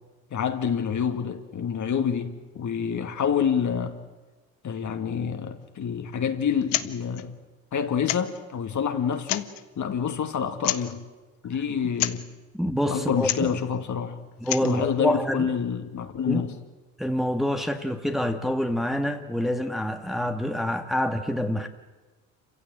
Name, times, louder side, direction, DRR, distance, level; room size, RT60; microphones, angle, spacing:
voice 1, 0.3-4.0 4.6-7.3 7.7-11.0 11.4-12.3 12.9-14.2 14.6-16.6, left 7 dB, 45° left, 2.4 m, -27 dB
sound 1, 6.6-6.9 7.1-7.2 8.0-8.4 9.1-9.6 10.6-10.9 11.9-12.2 13.2-13.5 14.3-14.8, left 16 dB, 70° left, 1.2 m, -28 dB
voice 2, 12.5-13.5 14.4-15.5 16.3-16.4 17.0-21.7, equal, ahead, 1.9 m, -26 dB
27.5 x 16.0 x 9.1 m
hypercardioid pair, 75°, 42 cm